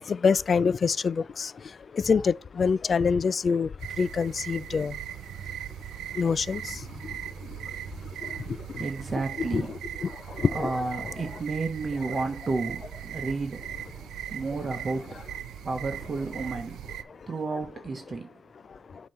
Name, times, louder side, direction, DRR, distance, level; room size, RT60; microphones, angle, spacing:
voice 1, 0.0-1.5 1.9-3.7 4.0-5.0 6.2-6.7 9.4-9.7 10.0-10.1 10.4-10.8 11.0-11.1 12.1-12.2, left 5 dB, 40° left, 0.3 m, -25 dB
sound 1, 3.8-17.0, right 10 dB, 75° right, 0.5 m, -39 dB
voice 2, 8.5-9.7 10.5-13.9 14.3-15.2 15.6-18.4, right 3 dB, 35° right, 1.0 m, -32 dB
7.5 x 3.0 x 5.5 m
cardioid pair, 90°, 0 cm